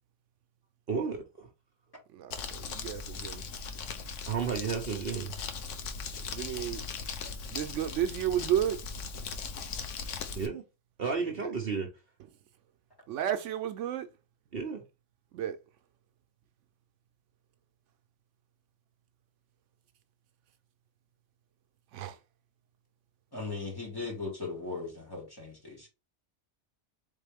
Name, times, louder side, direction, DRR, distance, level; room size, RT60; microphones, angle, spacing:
voice 1, 0.9-1.5 4.3-5.3 10.3-10.6 11.0-11.9 14.5-14.8, right 5 dB, 55° right, 0.9 m, -32 dB
voice 2, 2.1-3.4 6.3-6.8 7.5-8.8 11.2-11.5 13.1-14.1 15.3-15.6 21.9-22.2, right 10 dB, 80° right, 0.9 m, -32 dB
Crumpling crinkling, 2.3-10.5, left 5 dB, 80° left, 1.1 m, -39 dB
voice 3, 23.3-25.9, left 3 dB, 20° left, 2.2 m, -38 dB
4.1 x 3.7 x 3.4 m
omnidirectional pair, 1.3 m